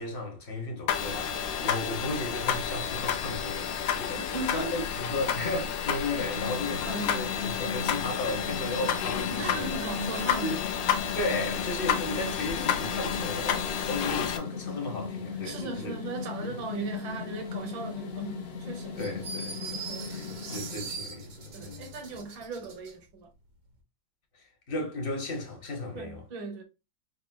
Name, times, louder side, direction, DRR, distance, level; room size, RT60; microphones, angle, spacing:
voice 1, 0.0-9.8 10.4-10.6 11.1-15.9 16.4-16.5 18.6-19.8 20.0-21.9 24.3-26.2, left 2 dB, 30° left, 1.3 m, -35 dB
sound 1, 0.9-14.4, left 8 dB, 75° left, 1.4 m, -31 dB
voice 2, 4.2-4.9 6.9-7.2 9.3-10.6 15.4-19.0 19.9-20.4 21.5-23.3 25.9-26.6, right 3 dB, 80° right, 1.8 m, -37 dB
sound 2, 6.2-21.5, left 5 dB, 60° left, 0.6 m, -38 dB
sound 3, 19.0-22.9, right 5 dB, 50° right, 1.2 m, -41 dB
5.7 x 3.1 x 2.2 m
omnidirectional pair, 2.1 m